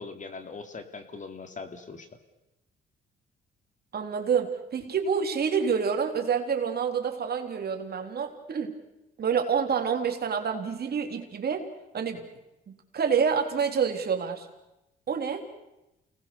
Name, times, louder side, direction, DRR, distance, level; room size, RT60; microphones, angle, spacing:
voice 1, 0.0-2.1, left 4 dB, 40° left, 7 dB, 2.9 m, -41 dB
voice 2, 3.9-8.7 9.2-11.7 11.9-12.3 12.7-14.5 15.1-15.5, right 6 dB, 50° right, 4 dB, 3.3 m, -28 dB
29.0 x 19.0 x 6.9 m, 0.92 s
cardioid pair, 90°, 20 cm